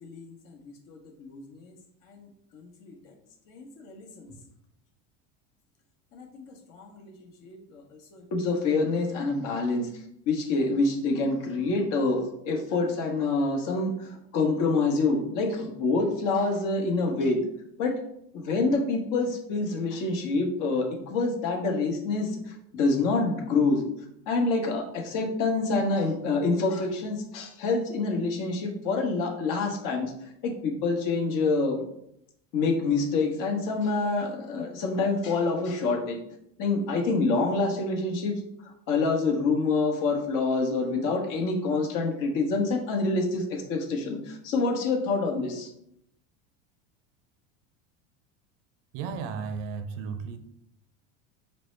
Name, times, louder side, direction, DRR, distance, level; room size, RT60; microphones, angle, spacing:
voice 1, 0.6-1.7 2.1-2.3 2.8-3.1 3.5-4.3 6.1-7.1 7.4-7.8 8.1-9.9 10.3-17.4 17.8-17.9 18.3-22.3 22.7-23.8 24.3-30.1 30.4-31.8 32.5-36.2 36.6-38.4 38.9-45.7, left 3 dB, 60° left, 1.0 m, -27 dB
voice 2, 48.9-50.4, right 5 dB, 65° right, 0.6 m, -34 dB
5.2 x 2.1 x 3.1 m
supercardioid pair, 100°, 36 cm